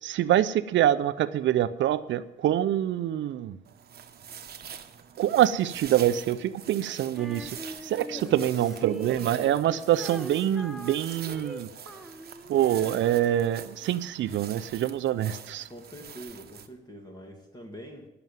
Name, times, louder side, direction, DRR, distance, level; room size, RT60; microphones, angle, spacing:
voice 1, 0.0-3.6 5.2-11.7 12.5-15.7, right 11 dB, 70° right, 14 dB, 0.6 m, -25 dB
sound 1, 3.6-16.7, right 8 dB, 50° right, 1.1 m, -45 dB
Female singing, 7.1-13.6, right 1 dB, ahead, 1.0 m, -43 dB
voice 2, 8.1-9.4 15.7-18.1, equal, 20° left, 2 dB, 2.0 m, -44 dB
11.0 x 7.0 x 9.1 m, 0.93 s
cardioid pair, 90°, 20 cm